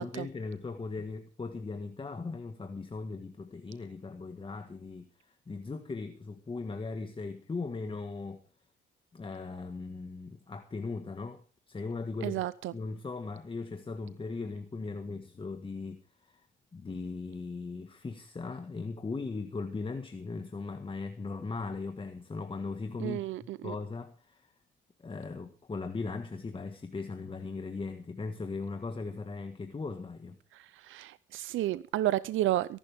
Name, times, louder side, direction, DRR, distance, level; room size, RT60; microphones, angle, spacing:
voice 1, 0.0-8.4 9.1-12.4 12.7-16.4 16.7-24.5 25.0-30.4, left 4 dB, 25° left, 1.6 m, -38 dB
voice 2, 12.2-12.7 23.0-23.7 30.5-32.8, right 14 dB, 80° right, 0.6 m, -32 dB
23.5 x 11.5 x 3.5 m
cardioid pair, 90°, 20 cm